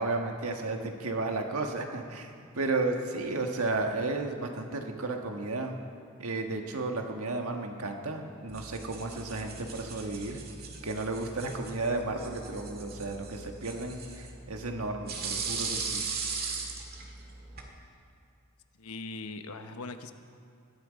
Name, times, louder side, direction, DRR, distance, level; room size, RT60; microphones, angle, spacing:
voice 1, 0.0-2.3 2.6-5.8 6.2-10.4 10.8-16.0, right 2 dB, 80° right, 3 dB, 1.6 m, -33 dB
sound 1, 8.5-17.7, right 5 dB, 45° right, 1.9 m, -39 dB
voice 2, 18.8-20.1, left 3 dB, 85° left, 8 dB, 1.0 m, -40 dB
20.5 x 12.5 x 5.2 m, 2.4 s
head